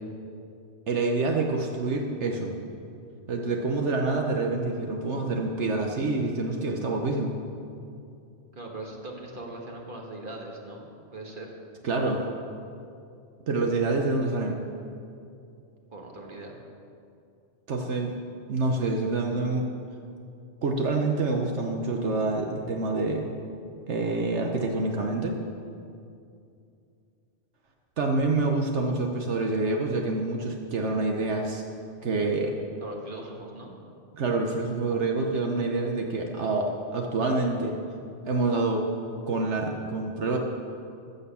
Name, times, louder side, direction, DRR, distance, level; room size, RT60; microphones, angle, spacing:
voice 1, 0.9-2.5 3.3-7.3 11.8-12.2 13.5-14.6 17.7-18.1 18.5-19.7 20.6-23.3 23.9-25.4 28.0-31.6 32.0-32.5 34.1-37.8 38.2-38.9 39.3-40.4, right 3 dB, 70° right, 2 dB, 1.2 m, -27 dB
voice 2, 8.5-11.5 15.9-16.5 32.8-33.8, right 2 dB, 45° right, 0 dB, 1.7 m, -40 dB
14.5 x 6.8 x 6.9 m, 2.5 s
omnidirectional pair, 1.3 m